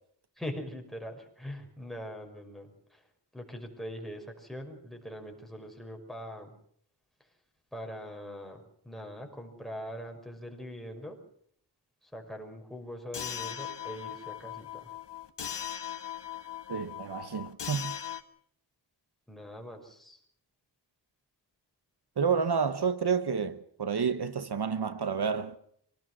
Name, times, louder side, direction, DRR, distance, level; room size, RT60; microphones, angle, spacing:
voice 1, 0.4-3.0 3.3-6.5 7.7-11.2 12.1-14.9 19.3-20.2, equal, ahead, 5.8 m, -42 dB
sound 1, 13.1-18.2, left 9 dB, 80° left, 1.7 m, -39 dB
voice 2, 16.7-17.9 22.2-25.6, right 6 dB, 65° right, 1.1 m, -30 dB
26.0 x 18.5 x 6.2 m
wide cardioid pair, 95°, 41 cm